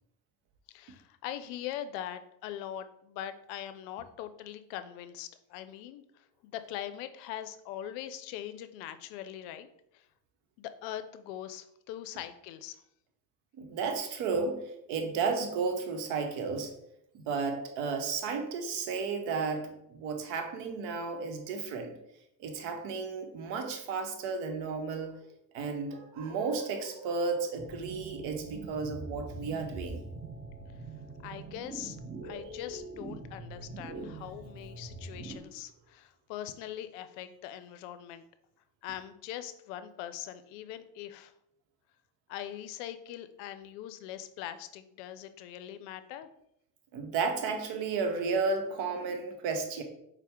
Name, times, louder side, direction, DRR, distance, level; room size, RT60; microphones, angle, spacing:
voice 1, 0.7-9.7 9.9-10.1 10.6-12.8 31.2-32.0 32.2-38.2 38.8-41.3 42.3-46.3, left 11 dB, 70° left, 11 dB, 0.5 m, -42 dB
voice 2, 13.6-14.6 14.9-16.7 17.1-21.9 22.4-25.1 25.5-30.0 46.9-49.8, right 4 dB, 65° right, 5 dB, 0.8 m, -33 dB
sound 1, 27.6-35.4, right 3 dB, 20° right, 0.7 m, -43 dB
4.1 x 2.1 x 3.5 m, 0.79 s
hypercardioid pair, 75°, 49 cm